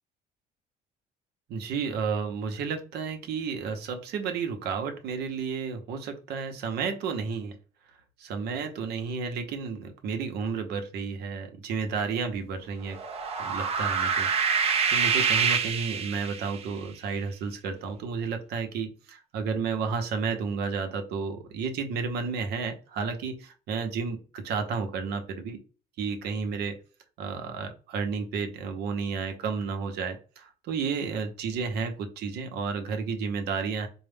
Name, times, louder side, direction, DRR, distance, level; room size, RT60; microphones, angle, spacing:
voice 1, 1.5-7.6 8.2-13.0 13.4-25.6 26.0-26.8 27.2-33.9, right 5 dB, 75° right, 6 dB, 0.8 m, -32 dB
sound 1, 12.9-16.6, right 6 dB, 35° right, 0.6 m, -26 dB
4.4 x 2.1 x 3.4 m, 0.37 s
cardioid pair, 110°, 17 cm